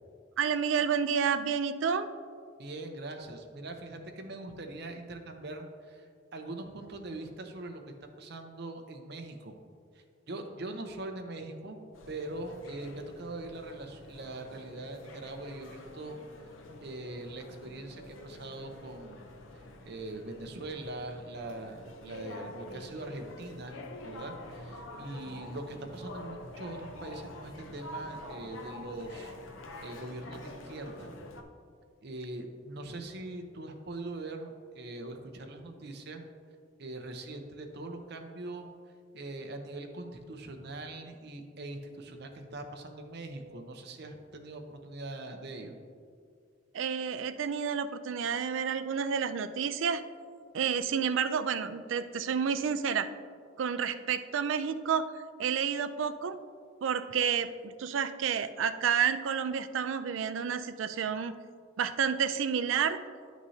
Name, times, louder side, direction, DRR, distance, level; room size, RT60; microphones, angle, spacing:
voice 1, 0.4-2.1 46.7-50.0 50.5-53.1 53.6-56.4 56.8-61.3 61.8-63.0, right 7 dB, 75° right, 12 dB, 0.4 m, -30 dB
voice 2, 2.6-6.1 6.3-7.8 8.2-9.6 10.3-11.8 12.1-16.5 16.8-19.3 19.9-29.3 29.8-31.1 32.0-36.2 36.8-38.7 39.1-45.8, right 2 dB, 55° right, 4 dB, 0.7 m, -42 dB
sound 1, 11.9-31.4, left 1 dB, 85° left, 0.7 m, -47 dB
11.0 x 6.1 x 2.8 m, 2.1 s
head